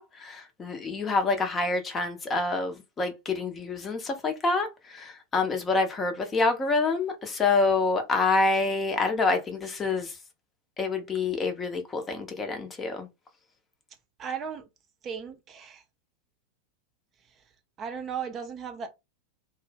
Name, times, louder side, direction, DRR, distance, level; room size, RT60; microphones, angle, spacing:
voice 1, 0.0-10.2 10.8-13.1, left 3 dB, 20° left, 0.6 m, -27 dB
voice 2, 14.2-14.7 15.0-15.8 17.8-18.9, right 7 dB, 30° right, 0.4 m, -36 dB
2.1 x 2.0 x 3.2 m
figure-of-eight pair, 90°, 0 cm